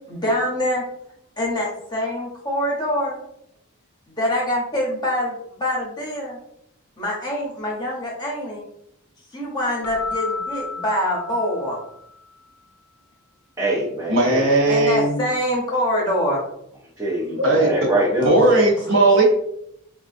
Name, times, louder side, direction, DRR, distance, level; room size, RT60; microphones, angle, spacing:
voice 1, 0.1-0.8 1.4-3.2 4.1-6.4 7.0-8.7 9.3-11.8 14.7-16.4, left 1 dB, 20° left, -4 dB, 0.8 m, -24 dB
Keyboard (musical), 9.8-12.2, left 4 dB, 80° left, 0.5 m, -32 dB
voice 2, 13.6-14.5 17.0-18.3, right 1 dB, 15° right, -6 dB, 0.5 m, -23 dB
voice 3, 14.1-15.2 17.4-17.7 18.2-19.2, right 2 dB, 55° right, -1 dB, 0.7 m, -17 dB
3.6 x 2.3 x 2.5 m, 0.77 s
head